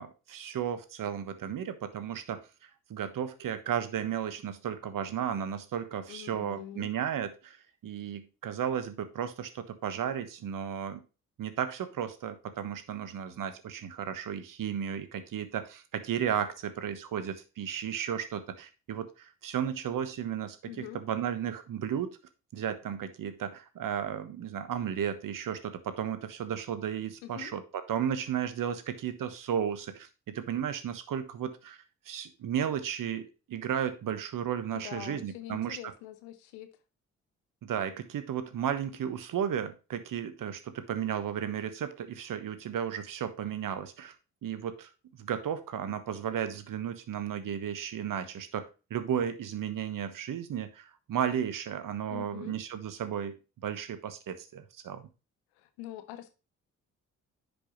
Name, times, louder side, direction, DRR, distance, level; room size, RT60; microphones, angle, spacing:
voice 1, 0.0-2.4 2.9-7.6 7.8-11.0 11.4-22.2 22.5-31.8 32.1-35.9 37.6-44.1 44.4-44.9 45.2-53.3 53.6-55.0, right 9 dB, 55° right, 11 dB, 1.3 m, -34 dB
voice 2, 6.1-6.9 20.7-21.0 27.2-27.5 34.7-36.7 52.1-52.6 55.6-56.4, left 13 dB, 75° left, 11 dB, 1.0 m, -44 dB
10.0 x 5.4 x 3.1 m, 0.31 s
hypercardioid pair, 45°, 39 cm